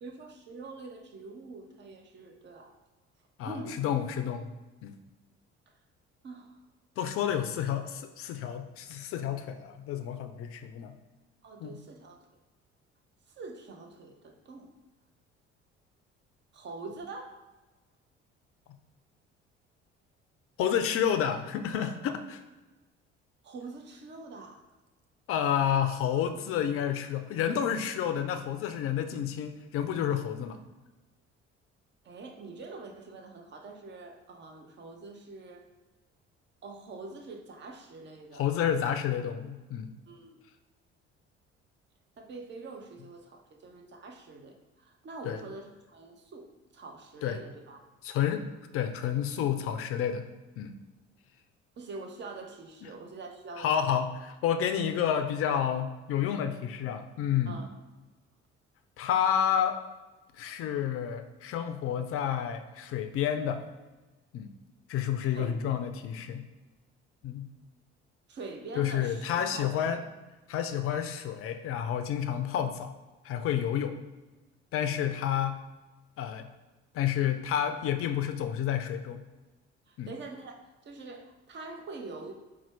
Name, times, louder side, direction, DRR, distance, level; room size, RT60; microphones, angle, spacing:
voice 1, 0.0-2.8 3.4-3.8 6.2-6.6 11.4-12.2 13.3-14.7 16.5-17.4 23.4-24.6 32.0-35.6 36.6-38.5 40.1-40.4 42.2-47.8 51.8-53.9 57.5-57.7 65.2-65.6 68.3-69.9 79.9-82.3, right 3 dB, 30° right, 4 dB, 0.7 m, -44 dB
voice 2, 3.4-4.5 4.8-5.0 7.0-10.9 11.6-11.7 20.6-22.4 25.3-30.6 38.3-39.9 45.2-45.4 47.2-47.4 48.0-48.4 48.7-50.3 50.6-50.7 53.6-57.6 59.0-59.8 60.4-63.6 64.3-64.5 64.9-66.4 67.2-67.5 68.8-70.0 70.5-72.9 73.2-74.0 74.7-75.5 76.2-76.5 76.9-79.2 80.0-80.1, left 9 dB, 40° left, 8 dB, 0.5 m, -30 dB
4.2 x 2.3 x 4.4 m, 1.2 s
figure-of-eight pair, 50°, 35 cm